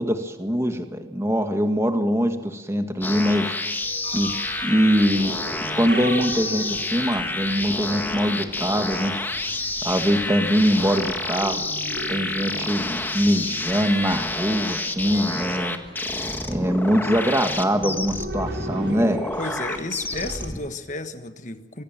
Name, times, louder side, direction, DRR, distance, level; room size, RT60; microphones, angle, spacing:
voice 1, 0.0-3.5 4.1-4.3 4.6-5.3 5.8-9.1 9.8-11.7 12.1-15.8 16.5-19.2, equal, 15° right, 6 dB, 1.9 m, -23 dB
sound 1, 3.0-20.6, left 2 dB, 10° left, 1.6 m, -29 dB
sound 2, 3.8-20.5, right 1 dB, 85° right, 4.7 m, -39 dB
voice 2, 19.4-21.8, left 3 dB, 45° left, 9 dB, 1.4 m, -33 dB
24.0 x 17.0 x 9.0 m, 1.3 s
head